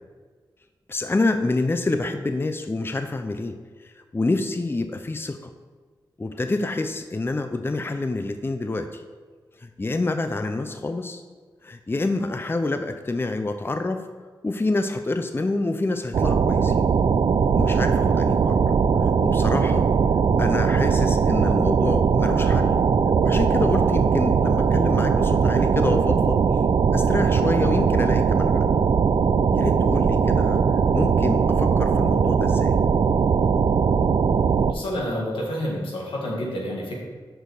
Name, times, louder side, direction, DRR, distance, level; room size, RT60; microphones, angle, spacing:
voice 1, 0.9-5.5 6.2-9.0 9.6-11.2 11.6-14.1 14.4-16.7 17.6-18.6 19.0-19.9 20.4-22.8 23.2-26.4 26.9-28.7 29.5-32.8, left 2 dB, 25° left, 8 dB, 0.5 m, -27 dB
sound 1, 16.1-34.7, right 6 dB, 65° right, 0.4 m, -20 dB
voice 2, 34.7-37.0, equal, 90° left, -2 dB, 1.9 m, -29 dB
6.2 x 5.2 x 6.5 m, 1.5 s
cardioid pair, 55°, 9 cm